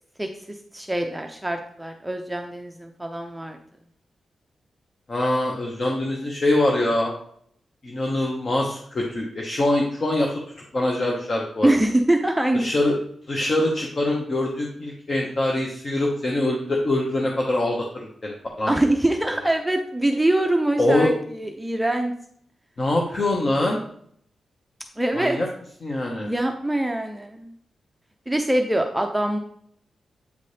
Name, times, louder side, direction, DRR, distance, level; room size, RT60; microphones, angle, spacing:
voice 1, 0.2-3.6 11.6-12.7 18.7-22.1 25.0-25.4 26.2-27.5 28.3-29.4, right 1 dB, 5° right, 4 dB, 0.5 m, -24 dB
voice 2, 5.1-7.1 7.8-10.3 10.7-11.7 12.5-13.0 13.3-18.7 20.8-21.1 22.8-23.8 25.1-25.5 25.8-26.3, left 1 dB, 35° left, 0 dB, 0.9 m, -23 dB
8.3 x 4.1 x 3.3 m, 0.66 s
wide cardioid pair, 120°, 0 cm